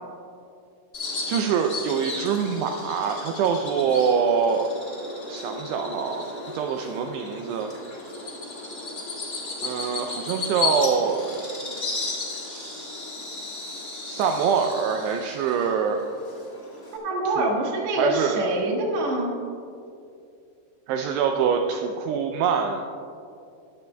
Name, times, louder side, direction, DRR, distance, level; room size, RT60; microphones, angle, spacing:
Bird vocalization bird call bird song, 0.9-17.0, left 3 dB, 25° left, 2.5 m, -34 dB
voice 1, 1.3-4.7 5.3-6.3 6.5-7.7 9.6-11.5 12.5-12.9 14.1-16.0 17.4-17.6 18.0-18.4 20.9-22.8, right 6 dB, 85° right, 3 dB, 2.4 m, -25 dB
voice 2, 16.9-19.4, right 2 dB, 50° right, -2 dB, 2.3 m, -25 dB
20.5 x 11.5 x 2.3 m, 2.4 s
omnidirectional pair, 5.5 m